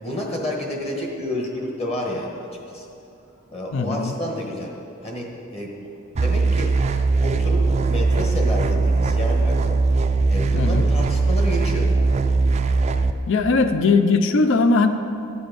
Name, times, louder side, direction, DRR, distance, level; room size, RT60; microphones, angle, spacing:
voice 1, 0.0-2.3 2.7-2.8 3.5-4.7 5.0-5.7 6.2-6.7 7.2-9.8 10.3-11.9, left 1 dB, 30° left, -1 dB, 1.4 m, -29 dB
voice 2, 3.7-4.1 10.5-10.9 13.3-14.9, left 3 dB, 60° left, 9 dB, 0.5 m, -19 dB
sound 1, 6.1-13.1, right 3 dB, 30° right, 0.3 m, -20 dB
12.0 x 7.1 x 5.2 m, 2.8 s
head